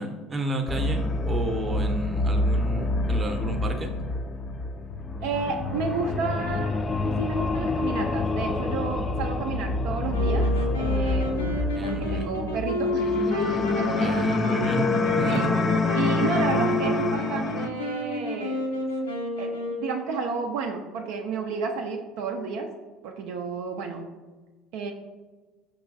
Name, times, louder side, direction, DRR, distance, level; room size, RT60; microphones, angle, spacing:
voice 1, 0.0-3.9 11.7-12.3 14.0-14.9 15.2-15.5, right 1 dB, 25° right, 4 dB, 0.6 m, -31 dB
sound 1, 0.7-17.7, left 2 dB, 30° left, 0.3 m, -27 dB
voice 2, 5.2-10.5 10.8-14.1 15.3-15.5 15.9-18.8 19.4-22.7 23.0-24.1 24.7-24.9, right 5 dB, 70° right, 2 dB, 0.3 m, -31 dB
sound 2, 10.1-20.1, left 2 dB, 85° left, 0.5 m, -30 dB
5.2 x 3.0 x 2.5 m, 1.3 s
hypercardioid pair, 65°, 0 cm